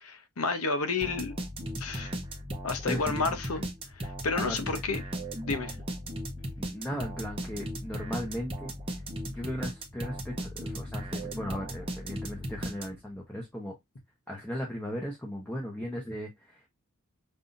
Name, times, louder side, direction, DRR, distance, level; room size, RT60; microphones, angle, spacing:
voice 1, 0.0-1.3 1.8-2.2 2.6-3.6 3.9-5.0 5.4-5.8, left 4 dB, 70° left, 0.8 m, -31 dB
sound 1, 1.0-13.2, equal, 25° right, 0.8 m, -37 dB
voice 2, 2.8-3.2 4.3-4.8 6.6-9.0 9.3-13.7 14.3-16.7, equal, 5° left, 0.9 m, -37 dB
5.4 x 2.7 x 2.5 m
head